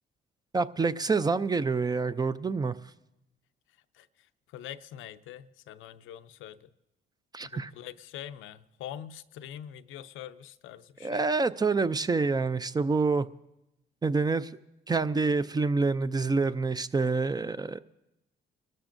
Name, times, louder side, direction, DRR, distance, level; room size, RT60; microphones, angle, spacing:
voice 1, 0.5-2.8 7.3-7.7 11.0-13.3 14.0-14.5 14.9-17.8, right 4 dB, 20° right, 0.4 m, -27 dB
voice 2, 3.9-6.7 7.4-11.3, left 11 dB, 85° left, 0.5 m, -44 dB
27.0 x 13.0 x 2.6 m
cardioid pair, 90°, 20 cm